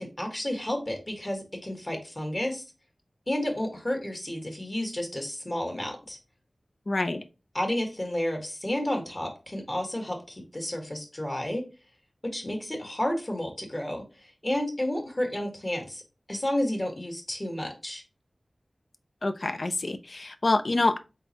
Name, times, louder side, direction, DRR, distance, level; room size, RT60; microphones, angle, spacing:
voice 1, 0.0-2.6 3.3-6.2 7.5-11.6 12.2-16.0 16.3-18.0, left 1 dB, 35° left, 3 dB, 1.5 m, -31 dB
voice 2, 6.9-7.2 19.2-21.0, left 2 dB, 60° left, 9 dB, 0.5 m, -26 dB
4.1 x 3.7 x 2.8 m, 0.29 s
wide cardioid pair, 55°, 0 cm